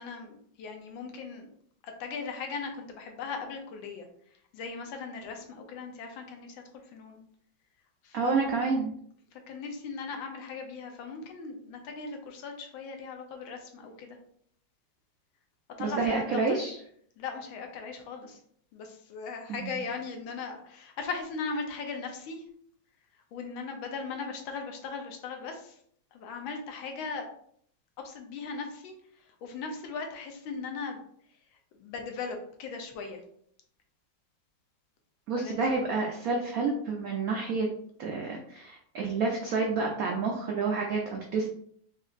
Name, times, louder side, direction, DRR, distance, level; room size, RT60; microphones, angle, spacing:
voice 1, 0.0-1.5 1.8-4.1 4.5-6.6 6.9-7.2 8.0-8.5 9.3-14.2 15.8-16.6 17.2-18.4 18.7-22.4 23.3-25.8 26.1-27.2 28.0-31.0 31.8-33.2 35.3-35.6 36.3-36.4, left 4 dB, 80° left, 4 dB, 1.5 m, -38 dB
voice 2, 8.1-8.9 15.8-16.8 19.6-19.8 35.3-37.7 38.0-41.5, right 4 dB, 85° right, 0 dB, 0.7 m, -29 dB
5.0 x 2.7 x 2.4 m, 0.64 s
omnidirectional pair, 2.2 m